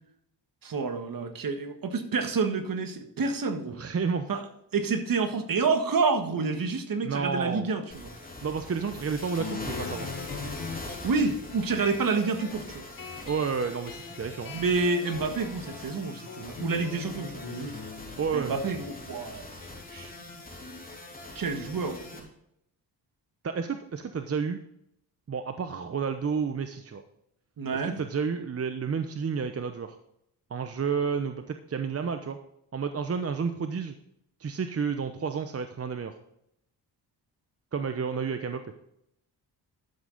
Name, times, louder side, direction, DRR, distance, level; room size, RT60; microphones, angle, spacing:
voice 1, 0.6-3.8 4.3-4.4 4.7-8.1 11.0-12.9 14.5-17.8 18.3-19.5 19.9-20.1 21.3-22.3 27.6-28.0, right 4 dB, 50° right, 7 dB, 1.6 m, -29 dB
voice 2, 3.8-4.3 7.0-7.6 8.4-10.1 13.3-14.5 18.2-18.5 23.4-24.6 25.3-27.0 27.7-30.0 30.5-32.4 32.7-34.0 34.4-36.1 37.7-38.6, right 6 dB, 35° right, 7 dB, 0.9 m, -30 dB
sound 1, 7.9-22.2, left 2 dB, 20° left, 3.3 m, -42 dB
sound 2, 9.4-20.5, left 6 dB, 50° left, 1.3 m, -43 dB
12.0 x 7.4 x 4.0 m, 0.75 s
cardioid pair, 75°, 42 cm